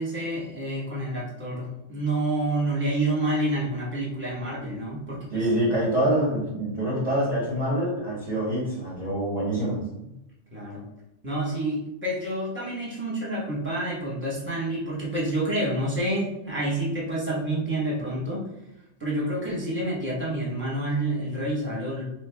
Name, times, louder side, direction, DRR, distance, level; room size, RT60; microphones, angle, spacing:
voice 1, 0.0-5.5 10.5-10.8 11.2-18.4 19.0-22.0, right 1 dB, 10° right, -6 dB, 1.2 m, -28 dB
voice 2, 5.3-9.8, right 1 dB, 35° right, -7 dB, 0.9 m, -25 dB
3.0 x 2.5 x 3.5 m, 0.88 s
omnidirectional pair, 1.3 m